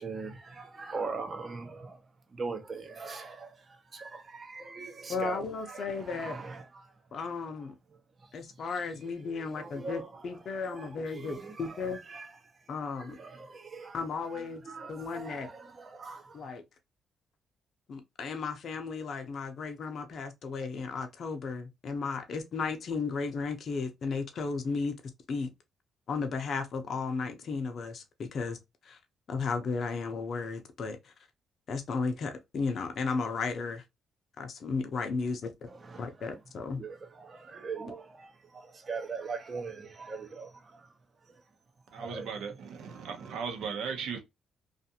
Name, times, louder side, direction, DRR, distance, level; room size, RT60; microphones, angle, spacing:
voice 1, 0.0-2.0 2.3-6.9 7.3-7.4 9.0-12.4 12.7-16.5 35.7-36.4 36.7-40.9 41.3-41.4 42.0-42.4 42.8-43.5 43.8-44.2, right 4 dB, 35° right, 0.7 m, -42 dB
voice 2, 5.1-6.4 7.1-7.7 8.3-12.0 12.7-13.2 13.9-14.6 14.9-15.5 16.3-16.6 17.9-25.0 25.3-25.5 26.1-28.6 28.8-29.0 29.3-31.1 31.7-33.8 34.4-35.5 36.0-36.8, left 4 dB, 55° left, 0.6 m, -34 dB
voice 3, 41.9-44.2, right 6 dB, 80° right, 0.8 m, -37 dB
2.5 x 2.4 x 2.7 m
cardioid pair, 90°, 0 cm